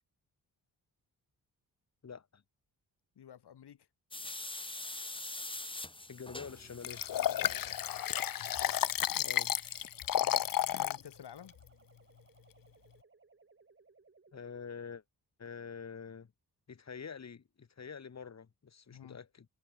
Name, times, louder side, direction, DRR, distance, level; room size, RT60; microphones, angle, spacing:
voice 1, 2.0-2.4 6.1-7.0 9.1-9.5 14.3-15.0 15.4-16.3 16.7-19.5, left 6 dB, 40° left, 2.2 m, -46 dB
voice 2, 3.2-3.9 7.1-7.7 10.2-11.6 18.9-19.2, left 9 dB, 75° left, 1.8 m, -53 dB
sound 1, 4.1-9.9, left 2 dB, 10° left, 2.2 m, -45 dB
sound 2, 6.7-14.7, right 4 dB, 30° right, 3.7 m, -66 dB
Liquid, 6.8-11.0 11.5-11.6, left 11 dB, 55° left, 0.6 m, -32 dB
wide cardioid pair, 145°, 40 cm